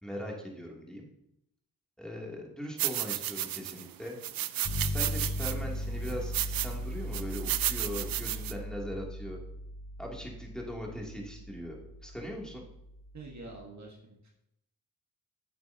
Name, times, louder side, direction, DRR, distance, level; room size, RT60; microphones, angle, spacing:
voice 1, 0.0-1.1 2.0-4.2 4.8-9.4 10.0-12.6, equal, ahead, -2 dB, 2.6 m, -40 dB
sound 1, 2.8-3.9 4.2-5.5 6.0-6.7 7.1-8.5, right 13 dB, 60° right, 0.5 m, -33 dB
sound 2, 4.6-13.6, equal, 55° left, 2.8 m, -38 dB
voice 2, 13.1-14.3, right 2 dB, 45° right, -1 dB, 1.6 m, -46 dB
8.7 x 7.4 x 2.8 m, 0.81 s
supercardioid pair, 45°, 40 cm